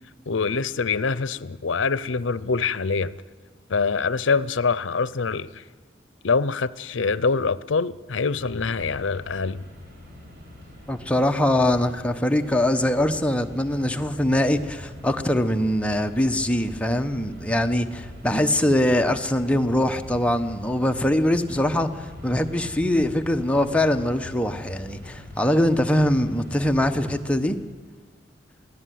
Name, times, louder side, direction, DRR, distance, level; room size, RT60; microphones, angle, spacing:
voice 1, 0.3-3.2 3.7-5.6 6.2-9.6, left 4 dB, 75° left, 0.7 m, -24 dB
Mechanisms, 8.4-27.8, left 1 dB, 55° right, 7.5 m, -42 dB
voice 2, 10.9-27.6, left 1 dB, 5° left, 0.9 m, -22 dB
22.5 x 16.0 x 9.3 m
head